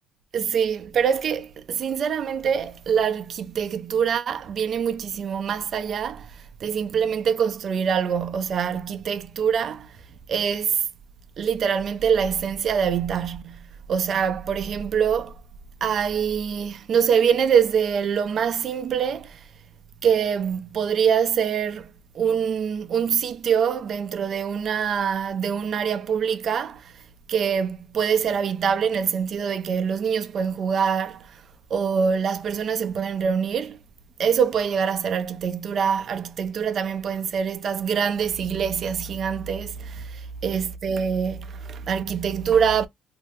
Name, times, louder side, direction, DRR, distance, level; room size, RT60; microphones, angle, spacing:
voice 1, 0.3-9.9 10.3-10.9 11.4-15.4 15.8-19.4 20.0-27.0 27.3-31.4 31.7-33.8 34.2-42.9, right 7 dB, 45° right, 0.4 m, -24 dB
2.7 x 2.0 x 3.6 m
cardioid pair, 125°, 0 cm